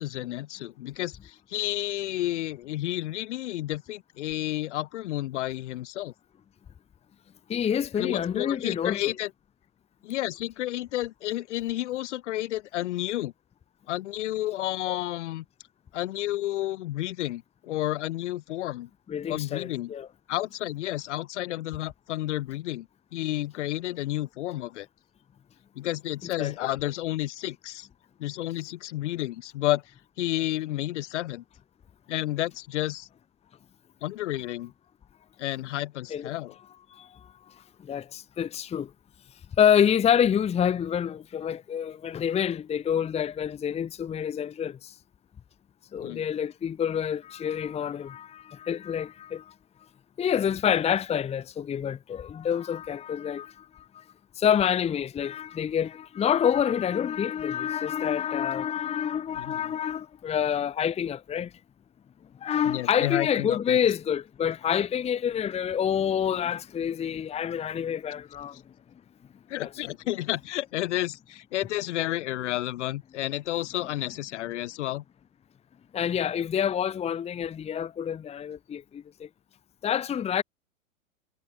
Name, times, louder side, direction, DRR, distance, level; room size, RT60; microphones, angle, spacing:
voice 1, 0.0-6.1 8.0-9.3 10.0-13.3 13.9-15.4 15.9-18.9 19.3-19.9 20.3-24.9 25.8-27.9 28.2-29.8 30.2-31.4 32.1-33.1 34.0-34.7 35.4-36.5 46.0-46.2 59.4-59.7 62.7-63.8 69.5-75.0, left 15 dB, 60° left, 2.2 m, -31 dB
voice 2, 7.5-9.0 19.1-20.1 26.4-26.5 36.1-36.3 36.9-37.5 37.8-38.9 39.6-44.9 45.9-49.5 50.2-54.0 54.4-61.5 62.4-68.6 69.6-69.7 75.9-79.3 79.8-80.4, left 8 dB, 15° left, 1.2 m, -27 dB
hypercardioid pair, 115°, 40 cm